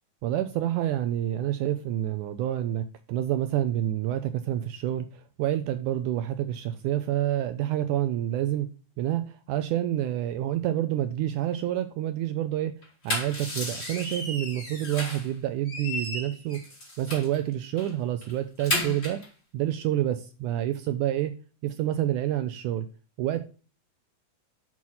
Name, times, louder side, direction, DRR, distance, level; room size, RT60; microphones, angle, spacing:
voice 1, 0.2-8.7 9.0-12.7 13.0-16.6 17.0-19.2 19.5-21.3 21.6-22.9 23.2-23.4, right 12 dB, 90° right, 9 dB, 1.8 m, -28 dB
sound 1, 12.8-15.3 15.6-17.4 17.8-17.9 18.2-19.3, left 1 dB, 20° left, 2.8 m, -33 dB
6.2 x 6.2 x 5.4 m, 0.35 s
omnidirectional pair, 4.2 m